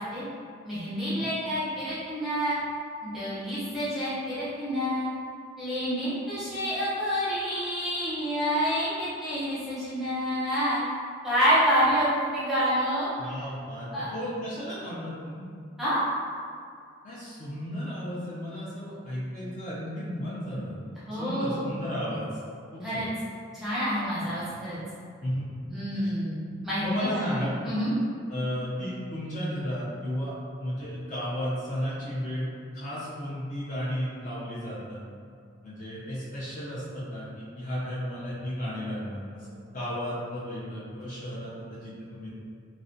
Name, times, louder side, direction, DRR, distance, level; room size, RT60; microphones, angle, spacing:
voice 1, 0.6-2.6 3.0-5.1 5.6-10.8 11.2-13.1 13.9-14.1 15.8-16.0 21.1-21.7 22.8-23.1 23.5-24.8 25.7-27.4 27.6-27.9, equal, ahead, -13 dB, 0.6 m, -28 dB
voice 2, 13.2-15.4 17.0-20.8 21.1-22.2 22.7-23.1 25.2-25.6 25.9-26.1 26.8-27.5 28.3-30.3 30.6-32.5 32.7-35.0 35.6-42.3, equal, 40° left, -9 dB, 0.4 m, -34 dB
2.4 x 2.0 x 2.5 m, 2.3 s
head